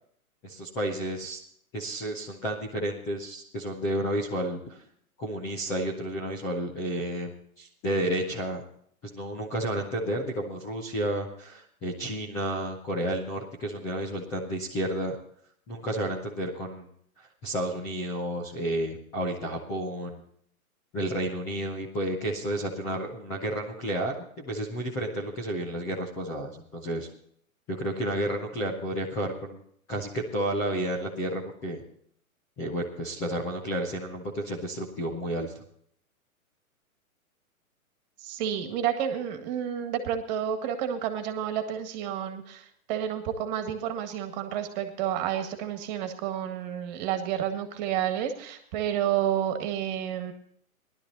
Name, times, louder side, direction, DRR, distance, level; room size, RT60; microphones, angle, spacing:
voice 1, 0.4-1.4 1.7-4.8 5.2-8.6 9.0-15.1 15.7-16.9 17.2-20.2 20.9-27.1 27.7-29.6 29.9-31.8 32.6-35.5, right 1 dB, 5° left, -2 dB, 0.5 m, -31 dB
voice 2, 38.2-50.3, right 9 dB, 30° right, 7 dB, 1.8 m, -30 dB
17.5 x 11.5 x 4.1 m, 0.64 s
hypercardioid pair, 155°, 44 cm